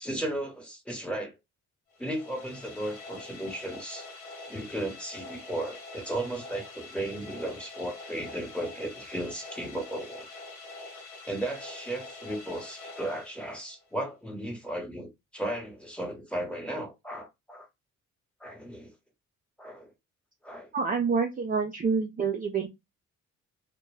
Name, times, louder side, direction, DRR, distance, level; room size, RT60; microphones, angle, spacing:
voice 1, 0.0-1.3 2.0-4.1 4.5-10.3 11.2-17.7 18.4-18.9 19.6-19.9 20.4-20.7, right 1 dB, 5° left, 1.1 m, -35 dB
sound 1, 1.9-13.9, left 3 dB, 80° left, 1.1 m, -45 dB
voice 2, 20.7-22.7, right 5 dB, 30° right, 0.4 m, -27 dB
2.2 x 2.2 x 3.2 m
cardioid pair, 90°, 30 cm